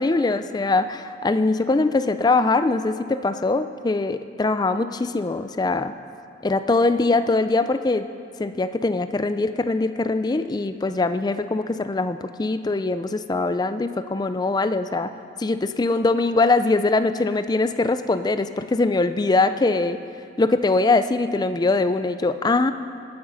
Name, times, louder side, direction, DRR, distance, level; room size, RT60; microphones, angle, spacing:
voice 1, 0.0-5.9 6.4-8.1 8.4-15.1 15.4-20.0 20.4-22.7, left 3 dB, 20° left, 11 dB, 0.4 m, -22 dB
19.0 x 8.7 x 5.5 m, 2.4 s
head